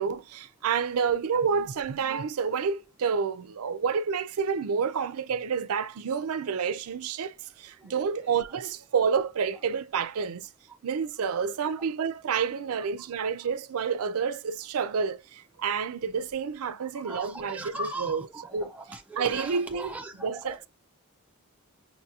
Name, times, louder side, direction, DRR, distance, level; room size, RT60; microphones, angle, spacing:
voice 1, 0.0-10.5 10.8-18.2 18.5-18.7 19.2-19.9 20.2-20.7, right 6 dB, 75° right, 0.4 m, -29 dB
voice 2, 7.8-8.3 10.7-10.8 11.2-11.4 13.0-13.1 13.4-13.5 16.8-20.7, right 1 dB, 5° right, 0.4 m, -40 dB
5.8 x 2.8 x 2.3 m
head